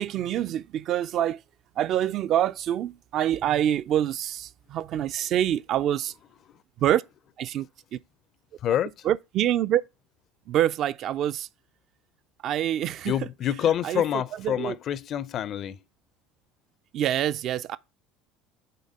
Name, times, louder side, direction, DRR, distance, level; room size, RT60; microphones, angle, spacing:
voice 1, 0.0-1.4 1.8-6.1 6.8-7.0 7.4-7.7 7.9-8.0 9.1-9.8 10.5-11.5 12.4-13.1 13.8-14.0 14.4-14.8 16.9-17.8, right 11 dB, 45° right, 0.4 m, -26 dB
voice 2, 8.6-8.9 13.0-15.8, left 10 dB, 45° left, 0.5 m, -27 dB
6.8 x 3.9 x 6.2 m
figure-of-eight pair, 65°, 0 cm